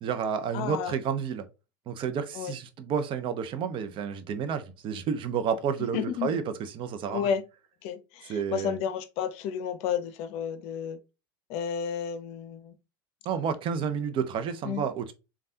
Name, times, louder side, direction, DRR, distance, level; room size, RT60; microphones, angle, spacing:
voice 1, 0.0-1.5 1.9-7.3 8.2-8.8 13.2-15.1, right 7 dB, 45° right, 0.6 m, -30 dB
voice 2, 0.5-0.9 2.3-2.5 5.9-6.3 7.1-7.4 7.8-11.0 11.5-12.7 14.6-14.8, left 8 dB, 55° left, 0.6 m, -31 dB
3.3 x 2.3 x 2.7 m
hypercardioid pair, 85°, 12 cm